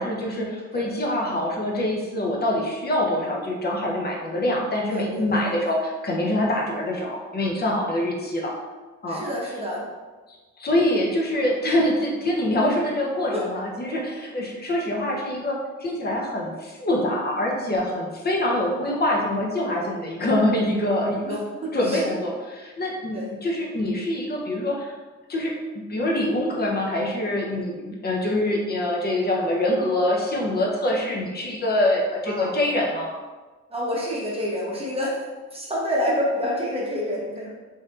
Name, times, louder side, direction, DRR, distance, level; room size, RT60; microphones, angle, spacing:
voice 1, 0.0-8.5 9.0-9.2 10.3-21.4 21.7-25.0 25.3-33.2, left 1 dB, 30° left, -2 dB, 0.7 m, -25 dB
voice 2, 4.9-5.5 9.1-9.9 11.6-11.8 13.3-13.4 21.2-21.4 21.6-22.0 23.1-23.4 32.3-32.5 33.7-35.2 35.5-37.5, equal, 20° right, -4 dB, 0.9 m, -28 dB
3.2 x 2.7 x 2.4 m, 1.3 s
cardioid pair, 90°, 30 cm